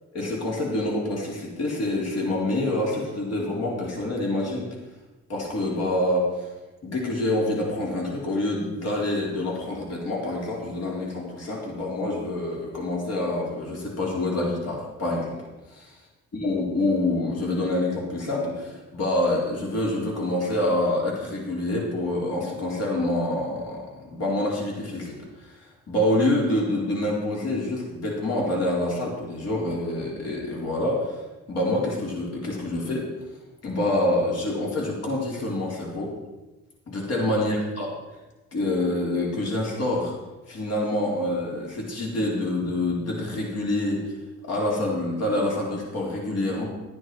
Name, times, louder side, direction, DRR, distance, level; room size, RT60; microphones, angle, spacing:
voice 1, 0.1-4.7 5.3-6.5 6.8-15.4 15.7-15.9 16.4-25.6 25.9-31.2 31.5-33.1 33.6-36.1 36.9-37.9 38.5-40.1 40.5-44.0 44.4-46.6, left 1 dB, 55° left, -3 dB, 4.0 m, -26 dB
12.0 x 9.7 x 4.8 m, 1.1 s
cardioid pair, 90°, 30 cm